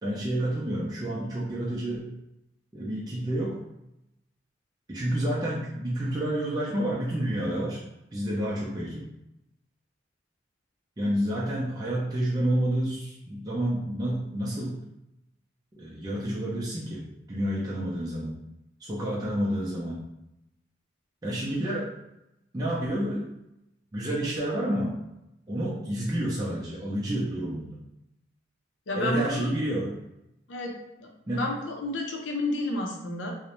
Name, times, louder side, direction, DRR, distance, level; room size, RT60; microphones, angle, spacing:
voice 1, 0.0-2.0 2.7-3.6 4.9-7.8 8.1-9.1 11.0-14.8 15.7-18.4 18.8-20.0 21.2-21.9 22.5-23.3 23.9-25.0 25.5-27.8 29.0-30.0 31.3-31.4, right 1 dB, 20° right, -6 dB, 0.4 m, -29 dB
voice 2, 28.9-29.5 30.5-33.3, left 1 dB, 90° left, 1 dB, 0.6 m, -31 dB
2.5 x 2.0 x 2.9 m, 0.88 s
head